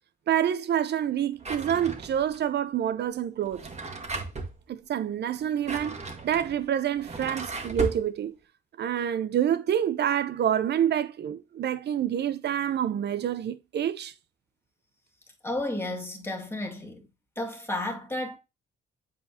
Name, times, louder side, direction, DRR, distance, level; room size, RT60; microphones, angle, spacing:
voice 1, 0.3-3.7 4.7-6.0 6.2-8.4 8.8-14.1, right 9 dB, 60° right, 0.8 m, -27 dB
Drawer open or close, 1.4-2.4 3.4-4.6 5.4-8.0, right 3 dB, 35° right, 1.6 m, -36 dB
voice 2, 15.4-17.1 17.4-18.4, left 1 dB, 10° left, 2.2 m, -32 dB
8.1 x 4.6 x 2.8 m
cardioid pair, 90°, 20 cm